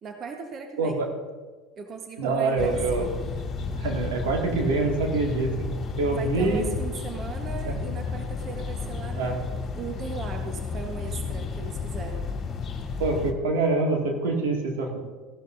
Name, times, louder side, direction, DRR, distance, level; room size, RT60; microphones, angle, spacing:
voice 1, 0.0-1.0 1.8-3.0 6.1-12.3, right 5 dB, 40° right, 4 dB, 1.1 m, -38 dB
voice 2, 0.8-1.1 2.2-3.1 3.8-5.5 6.0-6.7 7.6-7.7 9.2-9.4 13.0-15.0, right 3 dB, 80° right, 1 dB, 2.1 m, -25 dB
sound 1, 2.6-13.3, left 5 dB, 35° left, 2.0 m, -32 dB
15.5 x 11.5 x 2.6 m, 1.4 s
supercardioid pair, 95°, 0 cm